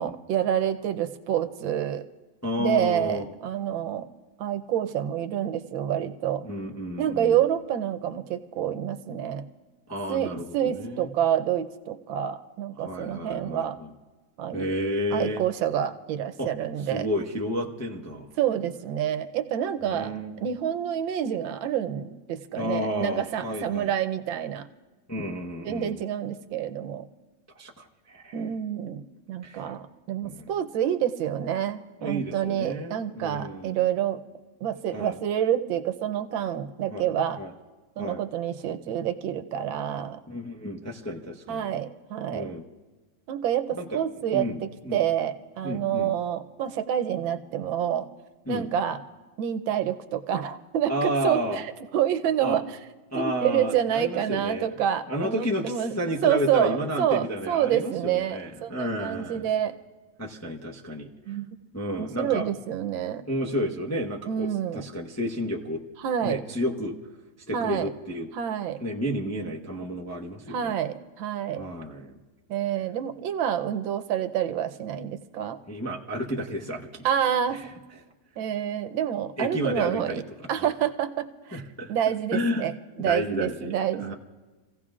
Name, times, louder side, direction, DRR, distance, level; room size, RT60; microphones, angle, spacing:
voice 1, 0.0-2.0 2.6-4.1 4.4-6.4 7.0-9.4 10.1-13.8 14.4-14.7 15.1-17.1 18.4-20.1 20.4-24.7 25.6-27.0 28.3-34.2 34.6-37.4 38.0-40.2 41.5-42.5 43.3-48.1 48.5-49.0 49.4-51.6 51.9-52.8 53.1-55.9 56.2-59.8 61.3-61.6 62.0-63.2 64.3-64.8 66.0-66.4 67.5-67.9 68.3-68.8 70.5-71.6 72.5-75.6 77.0-77.6 78.4-80.2 80.5-81.6 81.9-84.1, right 10 dB, 90° right, 8 dB, 1.5 m, -28 dB
voice 2, 2.4-3.3 6.4-7.4 9.9-11.1 12.9-13.9 14.5-15.4 16.4-16.5 16.9-18.3 19.8-20.5 22.5-23.9 25.1-26.0 27.6-28.3 29.4-29.8 30.2-30.5 32.0-33.8 34.9-35.2 36.9-37.1 37.4-37.5 38.0-38.2 40.3-41.7 42.3-42.6 43.8-44.0 44.3-45.0 45.6-46.1 48.5-48.7 50.9-51.6 52.4-52.6 53.1-54.7 55.1-59.5 60.2-61.4 61.7-62.5 63.3-65.8 66.2-66.9 67.5-68.3 68.8-70.7 71.6-72.2 75.7-77.0 77.5-77.6 79.4-80.2 81.5-81.9 82.3-82.7 83.0-84.1, equal, 15° left, -1 dB, 0.5 m, -31 dB
28.0 x 16.0 x 2.5 m, 1.2 s
omnidirectional pair, 2.1 m